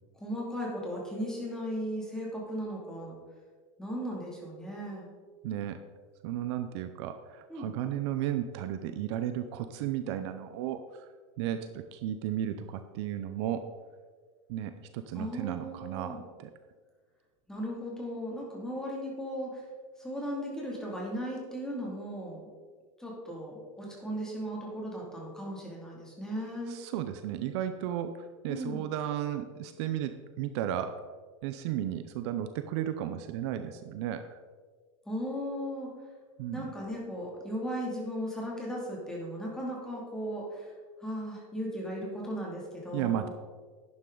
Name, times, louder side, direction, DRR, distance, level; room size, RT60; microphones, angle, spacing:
voice 1, 0.2-3.2 3.8-5.1 7.5-7.7 15.1-16.2 17.5-19.6 20.0-22.5 23.0-26.8 28.5-28.9 35.1-35.9 36.5-40.7 41.0-43.3, equal, 5° left, -3 dB, 2.5 m, -36 dB
voice 2, 5.4-5.8 6.2-11.1 11.4-13.7 14.5-16.5 26.7-28.1 28.4-31.0 31.4-34.2 36.4-36.7 42.9-43.3, right 11 dB, 55° right, 9 dB, 0.6 m, -34 dB
11.5 x 9.5 x 3.9 m, 1.5 s
supercardioid pair, 165°, 17 cm